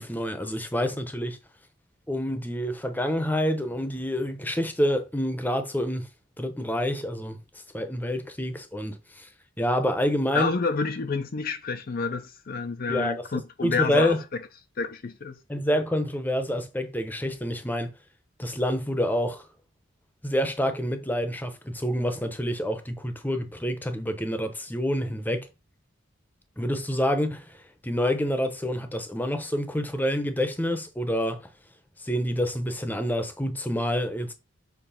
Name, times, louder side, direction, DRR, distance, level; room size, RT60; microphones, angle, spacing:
voice 1, 0.0-1.4 2.1-6.1 6.4-9.3 9.6-10.5 12.9-14.2 15.5-17.9 18.4-19.4 20.2-25.5 26.6-31.5 32.0-34.3, equal, 10° left, 0.8 m, -27 dB
voice 2, 10.3-14.4 14.8-15.4, left 4 dB, 45° left, 0.5 m, -29 dB
6.8 x 3.1 x 5.7 m
head